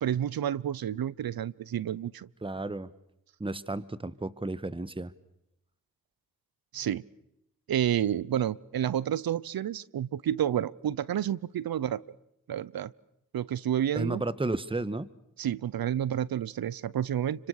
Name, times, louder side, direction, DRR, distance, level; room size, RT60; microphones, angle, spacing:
voice 1, 0.0-2.3 6.7-7.0 7.7-12.0 12.5-12.9 13.3-14.2 15.4-17.5, right 10 dB, 75° right, 22 dB, 0.9 m, -30 dB
voice 2, 2.4-2.9 3.4-5.1 13.9-15.1, right 2 dB, 15° right, 16 dB, 1.4 m, -33 dB
29.5 x 25.5 x 6.6 m, 0.83 s
cardioid pair, 55°, 36 cm